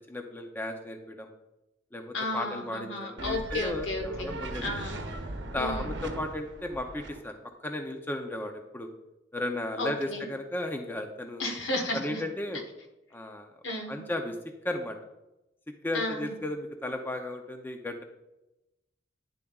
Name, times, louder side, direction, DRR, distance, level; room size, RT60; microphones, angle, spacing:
voice 1, 0.1-1.3 1.9-4.8 5.5-7.4 7.6-8.9 9.3-11.5 11.9-12.6 13.1-13.5 13.9-14.4 14.6-15.0 15.8-18.0, left 1 dB, 10° left, 4 dB, 0.5 m, -35 dB
voice 2, 2.1-4.3 4.6-5.0 5.5-5.9 9.8-10.3 11.4-12.2 13.6-14.0 15.9-16.4, left 2 dB, 70° left, 4 dB, 1.2 m, -33 dB
sound 1, 3.2-7.2, right 2 dB, 65° right, 0.9 m, -38 dB
10.0 x 7.1 x 2.3 m, 0.95 s
head